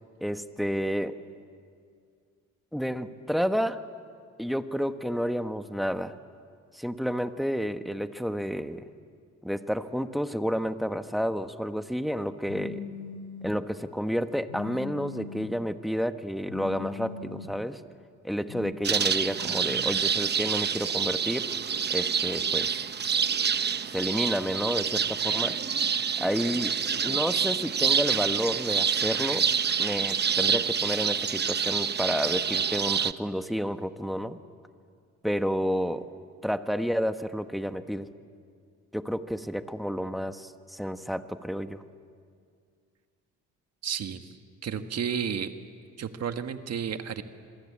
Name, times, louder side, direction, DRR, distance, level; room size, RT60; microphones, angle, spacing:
voice 1, 0.2-1.2 2.7-3.8 4.4-6.1 6.7-8.9 9.4-12.8 13.4-17.8 18.2-21.5 21.9-22.8 23.9-25.6 26.2-26.7 27.0-29.5 29.8-34.4 35.2-36.1 36.4-38.1 38.9-41.8, equal, ahead, 9 dB, 1.2 m, -30 dB
Telephone, 12.5-13.5 14.5-15.5 16.5-17.5 18.5-18.7, left 6 dB, 80° left, 1.9 m, -40 dB
sound 1, 18.8-33.1, right 7 dB, 35° right, 0.8 m, -27 dB
voice 2, 43.8-44.3 44.6-45.5 46.0-47.2, right 7 dB, 55° right, 8 dB, 1.5 m, -32 dB
26.5 x 22.5 x 8.6 m, 2.2 s
cardioid pair, 90°, 30 cm